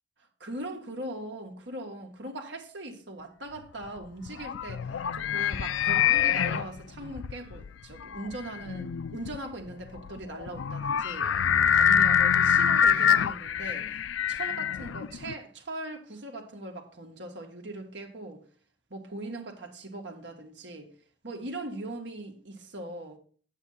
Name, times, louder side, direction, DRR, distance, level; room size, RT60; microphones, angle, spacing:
voice 1, 0.4-11.3 11.7-14.0 14.3-18.4 18.9-20.9 21.2-23.2, right 1 dB, 70° right, 1.9 m, -40 dB
sound 1, 3.9-15.3, left 8 dB, 90° left, 0.4 m, -25 dB
9.3 x 8.3 x 4.1 m
head